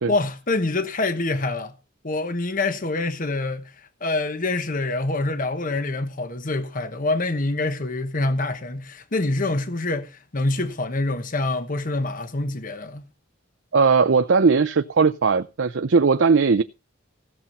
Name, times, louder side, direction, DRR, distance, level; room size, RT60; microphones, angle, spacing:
voice 1, 0.1-1.7 2.0-13.0, left 2 dB, 45° left, 1.1 m, -26 dB
voice 2, 13.7-16.6, right 5 dB, 75° right, 0.6 m, -18 dB
16.5 x 7.2 x 5.4 m
head